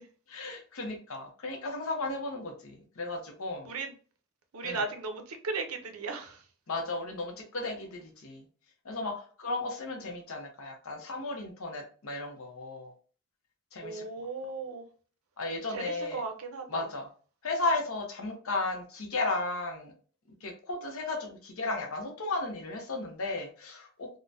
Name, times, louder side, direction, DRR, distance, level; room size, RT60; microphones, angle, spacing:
voice 1, 0.3-3.7 4.6-4.8 6.7-8.5 8.8-12.9 13.7-14.0 15.4-16.2 16.7-17.1 17.4-19.9 20.4-24.1, left 2 dB, 75° left, 2 dB, 0.8 m, -34 dB
voice 2, 4.5-6.4 13.8-14.8 15.7-16.9, right 3 dB, 80° right, 6 dB, 0.6 m, -36 dB
3.8 x 2.1 x 2.5 m, 0.41 s
head